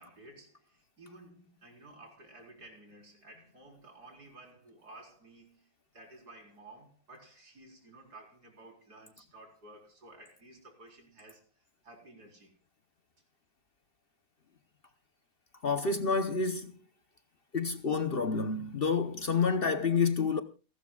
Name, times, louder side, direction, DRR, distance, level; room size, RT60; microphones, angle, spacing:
voice 1, 0.0-12.5, right 2 dB, 85° right, 4.9 m, -54 dB
voice 2, 15.6-16.7 17.5-20.4, left 5 dB, 45° left, 0.9 m, -29 dB
28.5 x 12.0 x 2.3 m
omnidirectional pair, 1.7 m